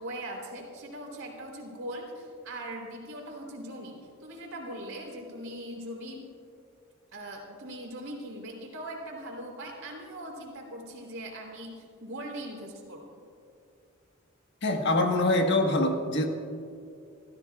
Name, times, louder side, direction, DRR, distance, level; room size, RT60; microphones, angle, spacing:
voice 1, 0.0-6.2 7.1-13.2, right 1 dB, 80° right, 1 dB, 3.7 m, -40 dB
voice 2, 14.6-16.3, left 2 dB, 55° left, 3 dB, 1.5 m, -24 dB
28.0 x 14.5 x 2.4 m, 2.5 s
head